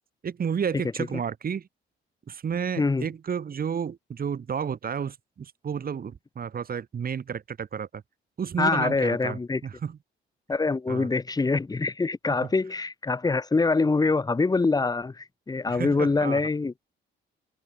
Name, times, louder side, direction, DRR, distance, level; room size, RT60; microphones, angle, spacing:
voice 1, 0.2-1.7 2.3-8.0 8.4-10.0 10.9-11.1 12.3-12.4 15.7-16.4, right 7 dB, 45° right, 3.2 m, -31 dB
voice 2, 2.8-3.1 8.6-9.6 10.5-16.7, left 3 dB, 20° left, 0.9 m, -24 dB
cardioid pair, 90°, 20 cm